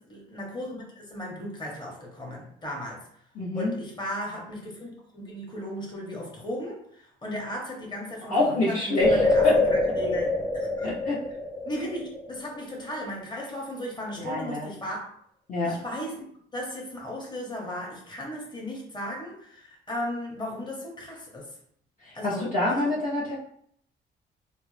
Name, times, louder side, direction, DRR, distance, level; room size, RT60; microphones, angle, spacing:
voice 1, 0.1-3.1 3.5-10.3 10.5-10.9 11.6-15.0 15.6-21.5 22.1-22.9, left 1 dB, 20° left, -2 dB, 1.1 m, -36 dB
voice 2, 3.3-3.7 8.3-9.6 10.8-11.2 14.2-14.7 15.5-15.8 22.0-23.4, left 2 dB, 40° left, -7 dB, 0.9 m, -26 dB
sound 1, 9.0-12.6, left 2 dB, 5° left, 0.8 m, -25 dB
3.5 x 2.1 x 3.2 m, 0.65 s
cardioid pair, 90°, 20 cm